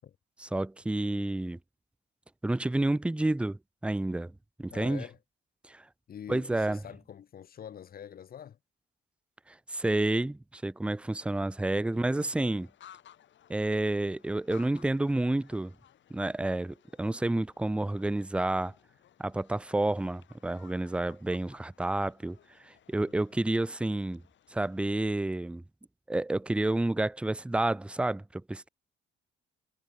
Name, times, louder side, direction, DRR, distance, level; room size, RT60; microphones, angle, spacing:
voice 1, 0.4-1.6 2.4-4.3 4.6-5.0 5.7-5.8 6.3-6.8 9.5-12.7 13.5-15.7 16.1-18.7 19.2-22.4 22.6-24.2 24.5-25.6 26.1-28.7, right 2 dB, 5° right, 0.4 m, -30 dB
voice 2, 4.7-5.2 6.1-8.6 11.9-12.1 23.0-23.1, left 9 dB, 50° left, 0.9 m, -45 dB
sound 1, 12.4-25.2, left 10 dB, 70° left, 6.9 m, -60 dB
cardioid pair, 90°, 20 cm